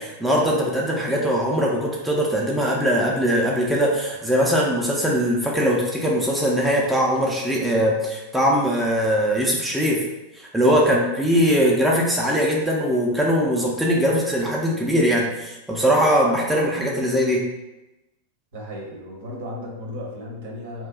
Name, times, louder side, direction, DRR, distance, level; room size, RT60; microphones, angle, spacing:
voice 1, 0.0-10.0 10.3-17.5, equal, 5° right, -4 dB, 0.5 m, -21 dB
voice 2, 10.7-11.0 18.5-20.9, left 1 dB, 55° right, -2 dB, 0.9 m, -35 dB
2.7 x 2.2 x 3.7 m, 0.99 s
figure-of-eight pair, 90°, 0 cm